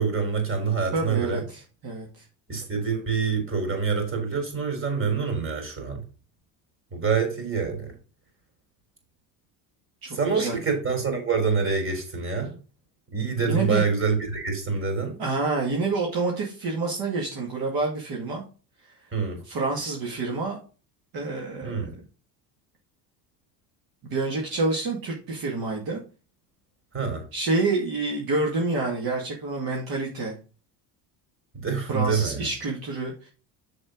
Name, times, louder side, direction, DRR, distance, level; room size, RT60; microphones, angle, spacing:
voice 1, 0.0-1.4 2.5-6.0 6.9-7.9 10.1-12.6 13.1-15.2 19.1-19.4 21.6-21.9 26.9-27.3 31.5-32.4, right 5 dB, 30° right, 4.0 m, -26 dB
voice 2, 0.9-2.2 10.0-10.5 13.4-13.8 15.2-18.4 19.4-20.6 21.1-21.9 24.0-26.0 27.3-30.4 31.9-33.3, right 3 dB, 55° right, 2.3 m, -28 dB
7.3 x 6.6 x 3.8 m
supercardioid pair, 95°, 43 cm